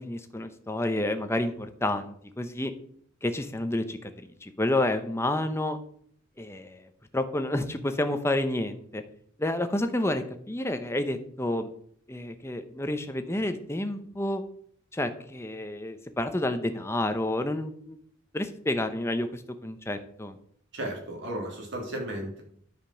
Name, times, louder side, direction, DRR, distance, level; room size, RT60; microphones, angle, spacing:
voice 1, 0.0-2.7 3.2-4.1 4.4-5.8 6.4-9.0 9.4-11.7 12.1-14.4 14.9-18.0 18.3-20.4, left 1 dB, 15° left, 8 dB, 0.8 m, -30 dB
voice 2, 20.7-22.4, right 1 dB, 60° right, -1 dB, 3.2 m, -34 dB
10.5 x 5.2 x 6.5 m, 0.62 s
head